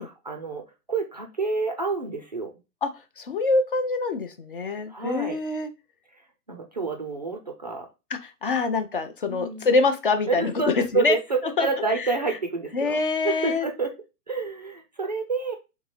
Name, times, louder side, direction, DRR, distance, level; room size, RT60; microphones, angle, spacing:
voice 1, 0.0-2.5 4.9-5.4 6.1-7.9 9.3-9.7 10.3-13.0 13.2-13.9 14.3-15.5, right 4 dB, 30° right, 3 dB, 0.4 m, -29 dB
voice 2, 3.2-5.7 8.2-10.5 10.9-11.2 11.6-11.7 12.0-12.1 12.7-13.7, left 3 dB, 35° left, 8 dB, 0.5 m, -25 dB
3.6 x 3.6 x 3.0 m, 0.27 s
figure-of-eight pair, 120°, 47 cm